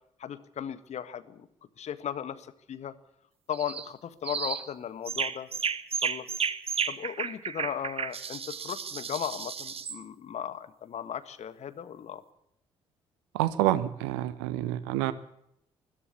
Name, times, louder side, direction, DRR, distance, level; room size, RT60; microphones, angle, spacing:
voice 1, 0.2-1.5 1.8-2.9 3.5-5.5 5.9-6.3 6.9-12.2, left 9 dB, 50° left, 12 dB, 1.7 m, -36 dB
sound 1, 3.5-3.9 4.2-4.7 5.1-10.0, right 6 dB, 40° right, 1.6 m, -33 dB
voice 2, 13.3-15.1, right 14 dB, 70° right, 15 dB, 1.1 m, -28 dB
21.0 x 14.5 x 8.5 m, 0.75 s
figure-of-eight pair, 40°, 15 cm